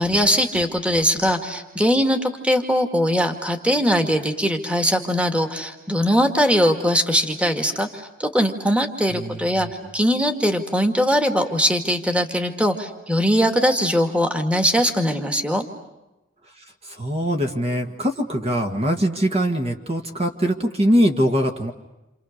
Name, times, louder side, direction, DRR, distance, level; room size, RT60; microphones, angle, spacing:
voice 1, 0.0-9.7 9.9-15.6, equal, 5° right, 5 dB, 2.1 m, -21 dB
voice 2, 9.1-9.5 16.9-21.7, equal, 30° right, 3 dB, 1.9 m, -22 dB
29.0 x 28.5 x 6.7 m, 0.98 s
head